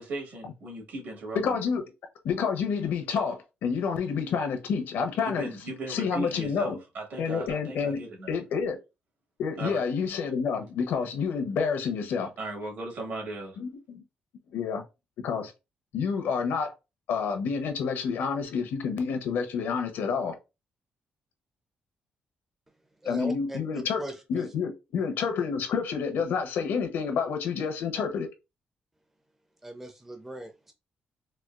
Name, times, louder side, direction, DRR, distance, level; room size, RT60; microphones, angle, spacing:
voice 1, 0.0-1.6 5.2-8.4 9.6-9.9 12.4-13.6, right 2 dB, 70° right, 1.9 m, -37 dB
voice 2, 1.3-1.8 2.2-5.5 5.9-6.8 7.2-8.0 8.3-8.8 9.4-12.3 13.6-14.0 14.5-14.8 15.2-15.5 15.9-16.7 17.1-20.3 23.1-24.0 24.3-28.3, left 6 dB, 85° left, 0.8 m, -29 dB
voice 3, 23.0-24.4 29.6-30.7, right 1 dB, 10° right, 0.4 m, -39 dB
4.2 x 2.3 x 2.3 m
cardioid pair, 145°, 3 cm